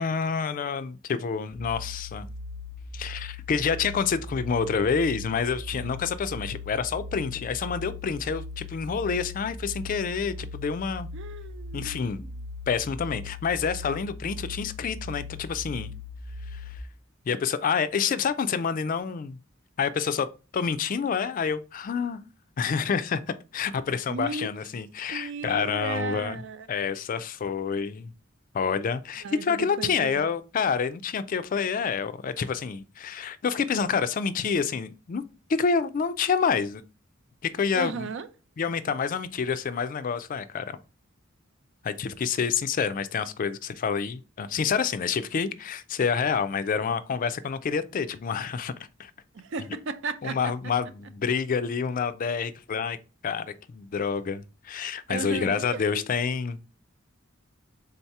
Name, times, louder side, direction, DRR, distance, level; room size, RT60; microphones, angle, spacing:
voice 1, 0.0-2.3 2.9-11.1 11.7-12.2 12.7-15.9 16.5-16.8 17.3-19.4 19.8-20.3 20.5-22.2 22.6-23.2 23.5-26.4 26.7-28.1 28.5-35.2 35.5-36.8 37.4-38.1 38.6-40.8 41.8-48.7 49.0-49.1 50.2-53.0 53.2-56.6, left 6 dB, 40° left, 0.3 m, -28 dB
sound 1, 1.6-16.8, left 3 dB, 30° right, 0.8 m, -39 dB
voice 2, 11.1-12.3 24.1-24.5 25.1-26.7 29.2-30.2 37.7-38.3 49.3-50.5 55.1-56.0, right 4 dB, 65° right, 0.5 m, -35 dB
3.8 x 2.8 x 4.5 m
head